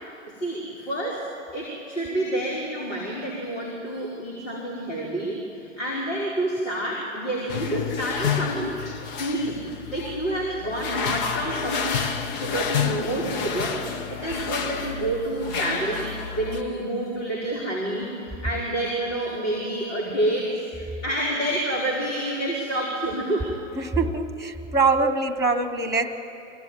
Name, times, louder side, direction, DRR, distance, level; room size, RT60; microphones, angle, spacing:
voice 1, 0.3-1.2 1.5-8.7 9.2-23.5, right 1 dB, 75° left, -4 dB, 5.1 m, -28 dB
sound 1, 7.5-16.6, left 7 dB, 45° left, 1.6 m, -30 dB
voice 2, 23.8-26.2, right 4 dB, 10° right, 10 dB, 1.6 m, -23 dB
25.0 x 16.5 x 9.3 m, 2.8 s
figure-of-eight pair, 95°, 36 cm